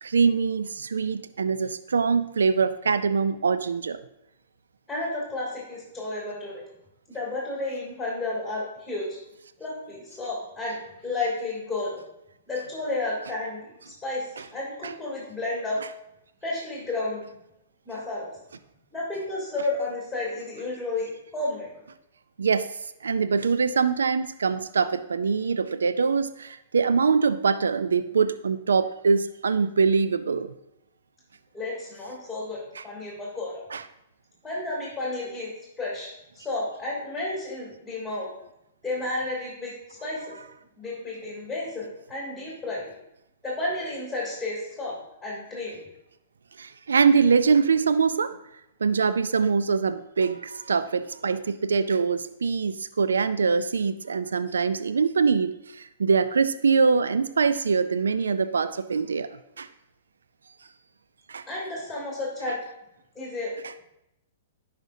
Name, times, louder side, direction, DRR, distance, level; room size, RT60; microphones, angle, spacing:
voice 1, 0.0-4.0 14.8-14.9 22.4-30.5 32.8-32.9 33.7-33.8 46.6-48.3 48.8-59.3 59.6-59.7 61.3-61.4, right 5 dB, 85° right, 13 dB, 0.3 m, -23 dB
voice 2, 4.9-6.6 7.1-9.2 9.6-10.8 11.0-12.0 12.5-15.8 16.4-17.2 17.8-18.3 18.9-21.7 31.5-33.6 34.4-35.5 35.8-38.3 38.8-40.4 40.8-42.9 43.4-45.0 45.2-45.8 61.5-62.6 63.1-63.6, left 2 dB, ahead, -5 dB, 2.9 m, -32 dB
11.0 x 5.0 x 2.7 m, 0.85 s
hypercardioid pair, 120°, 0 cm